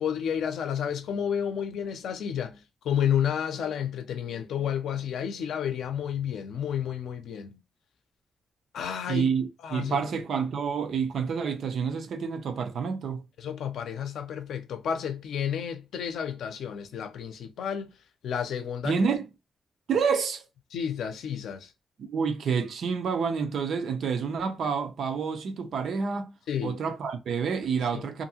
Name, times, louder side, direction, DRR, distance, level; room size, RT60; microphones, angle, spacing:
voice 1, 0.0-7.6 8.7-9.3 9.6-10.1 13.4-17.9 18.2-19.0 20.7-21.7 26.5-26.8 27.9-28.1, left 8 dB, 90° left, 0.5 m, -31 dB
voice 2, 9.1-13.2 18.8-19.3 19.9-20.4 22.0-26.3 26.6-28.2, right 6 dB, 55° right, 0.5 m, -28 dB
2.7 x 2.5 x 2.7 m
wide cardioid pair, 175°, 0 cm